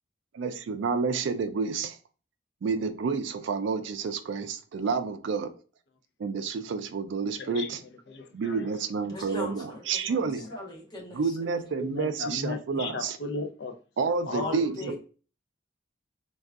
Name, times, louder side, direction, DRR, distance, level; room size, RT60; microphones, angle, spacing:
voice 1, 0.3-2.0 2.6-5.5 6.2-7.8 8.3-10.4 11.2-13.2 14.0-14.7, right 5 dB, 70° right, 0.3 m, -29 dB
voice 2, 7.3-8.8 9.4-9.5 10.1-10.6 11.8-13.7 14.3-14.6 14.8-15.0, left 3 dB, 60° left, 0.4 m, -36 dB
voice 3, 9.0-11.7 12.8-13.0 14.3-15.0, left 1 dB, 20° left, 0.7 m, -41 dB
3.5 x 2.3 x 2.3 m
head